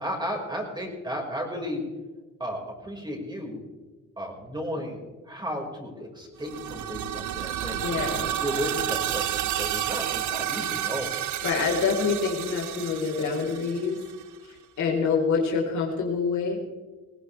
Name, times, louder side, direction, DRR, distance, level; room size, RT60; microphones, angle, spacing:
voice 1, 0.0-1.8 2.4-3.6 4.2-11.1, equal, 15° right, -1 dB, 5.5 m, -34 dB
sound 1, 6.4-14.2, right 11 dB, 75° right, 0.9 m, -31 dB
voice 2, 7.8-8.3 11.1-14.0 14.4-16.6, left 5 dB, 70° left, -1 dB, 4.5 m, -26 dB
21.0 x 17.0 x 3.5 m, 1.3 s
cardioid pair, 90°, 30 cm